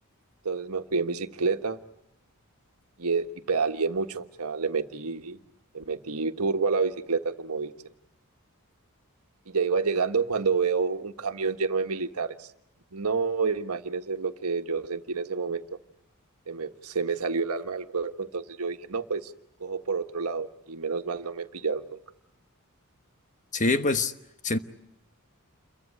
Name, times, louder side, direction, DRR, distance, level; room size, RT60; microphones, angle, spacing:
voice 1, 0.4-1.8 3.0-5.4 5.7-7.7 9.5-12.5 12.9-15.6 16.5-19.3 19.6-22.0, right 4 dB, 85° right, 1.5 m, -29 dB
voice 2, 23.5-24.1 24.4-24.6, left 3 dB, 35° left, 1.1 m, -24 dB
28.5 x 23.0 x 8.7 m
head